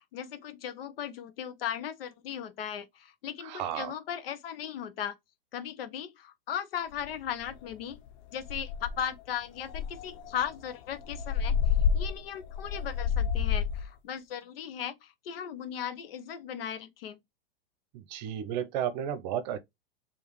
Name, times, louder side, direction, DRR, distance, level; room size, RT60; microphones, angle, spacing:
voice 1, 0.0-5.1 5.5-8.0 8.3-17.2, left 9 dB, 70° left, 1.0 m, -37 dB
voice 2, 3.4-3.9 17.9-19.6, right 10 dB, 50° right, 0.9 m, -33 dB
sound 1, 7.0-7.1 7.5-7.7 8.1-8.2 8.5-9.1 9.7-13.9, left 7 dB, 50° left, 0.6 m, -29 dB
4.8 x 2.9 x 3.1 m
hypercardioid pair, 135°, 30 cm